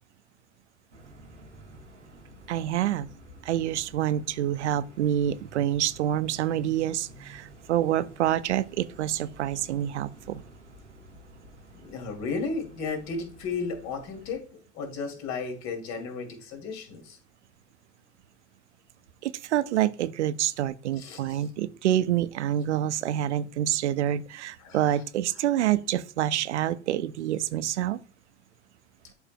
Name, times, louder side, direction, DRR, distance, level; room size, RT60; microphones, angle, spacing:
sound 1, 0.9-14.4, right 1 dB, 90° right, 1.5 m, -51 dB
voice 1, 2.5-3.1 3.4-10.4 19.2-28.0, right 11 dB, 75° right, 0.6 m, -27 dB
voice 2, 11.7-14.4 14.7-17.2 21.0-21.4 24.6-24.8, left 4 dB, 50° left, 2.4 m, -34 dB
11.5 x 4.9 x 2.2 m
figure-of-eight pair, 75°, 35 cm